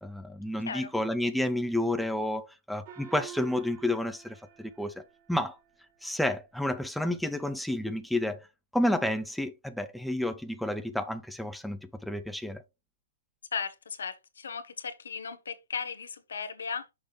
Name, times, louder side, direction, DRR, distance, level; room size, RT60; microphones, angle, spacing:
voice 1, 0.0-5.0 5.3-5.6 6.0-8.4 8.7-12.6, left 1 dB, ahead, 0.5 m, -30 dB
Gong, 2.9-5.8, right 9 dB, 50° right, 2.3 m, -49 dB
voice 2, 13.5-16.8, left 6 dB, 80° left, 1.0 m, -36 dB
6.2 x 4.9 x 3.2 m
hypercardioid pair, 125°, 0 cm